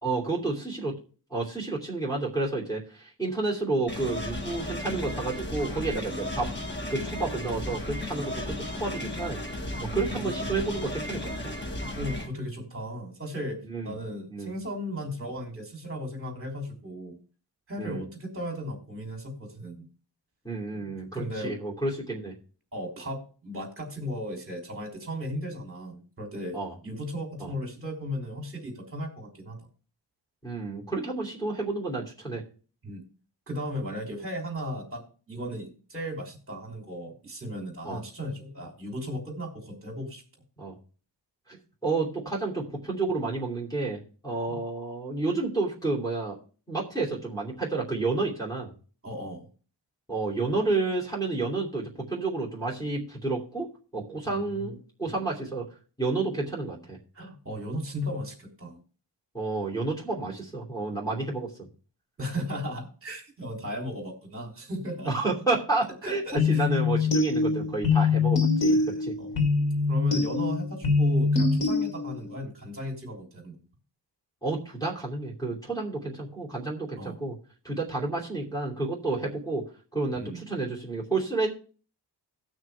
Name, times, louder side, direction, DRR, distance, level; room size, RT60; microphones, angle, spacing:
voice 1, 0.0-1.0 1.3-6.5 6.9-11.5 13.7-13.9 14.3-14.5 17.8-18.0 20.4-22.3 26.5-26.7 27.4-27.5 30.4-32.4 37.8-38.0 40.6-40.7 41.5-41.6 41.8-46.4 46.7-48.7 50.1-55.6 56.0-57.0 59.3-61.7 65.1-69.1 74.4-77.3 77.6-79.6 79.9-81.5, right 3 dB, 10° left, -4 dB, 2.9 m, -30 dB
sound 1, 3.9-12.3, left 1 dB, 25° left, 1.5 m, -34 dB
voice 2, 9.8-10.4 11.9-17.2 17.7-19.8 20.7-21.5 22.7-26.6 26.8-29.6 32.8-33.0 33.5-35.0 35.3-40.2 44.5-44.6 49.0-49.5 54.3-54.8 55.0-55.2 57.1-58.8 62.2-65.1 66.0-66.7 68.7-68.8 69.2-69.4 69.9-73.5 77.0-77.2 80.1-80.5, equal, 30° right, 1 dB, 3.1 m, -36 dB
sound 2, 66.4-72.3, left 4 dB, 80° left, 3.5 m, -24 dB
18.0 x 6.1 x 3.4 m, 0.39 s
wide cardioid pair, 150°, 43 cm